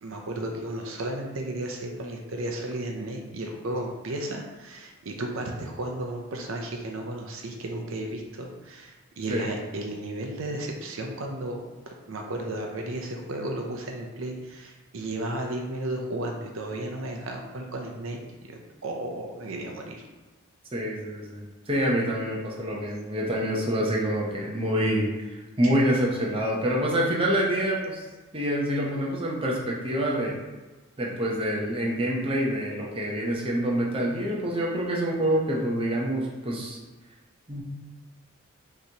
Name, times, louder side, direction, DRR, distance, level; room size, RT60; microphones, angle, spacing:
voice 1, 0.0-11.6 12.1-18.2 18.5-20.0, right 1 dB, 70° right, 1 dB, 0.6 m, -34 dB
voice 2, 20.7-28.0 28.3-30.4 31.0-36.8 37.5-37.6, equal, 25° right, -3 dB, 0.7 m, -26 dB
5.6 x 3.0 x 2.8 m, 1.2 s
head